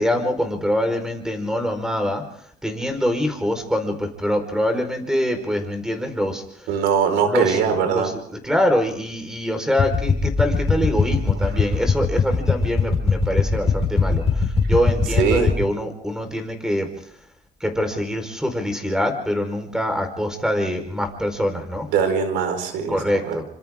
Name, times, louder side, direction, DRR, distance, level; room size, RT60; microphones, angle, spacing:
voice 1, 0.0-6.7 7.2-17.2 17.6-21.9 22.9-23.4, equal, 5° right, 6 dB, 4.6 m, -24 dB
voice 2, 6.7-8.1 15.2-15.5 21.9-23.0 23.3-23.4, right 7 dB, 90° right, 7 dB, 4.9 m, -21 dB
sound 1, 9.8-15.5, left 4 dB, 35° left, 5.1 m, -21 dB
27.5 x 25.5 x 3.7 m, 0.65 s
cardioid pair, 110°, 17 cm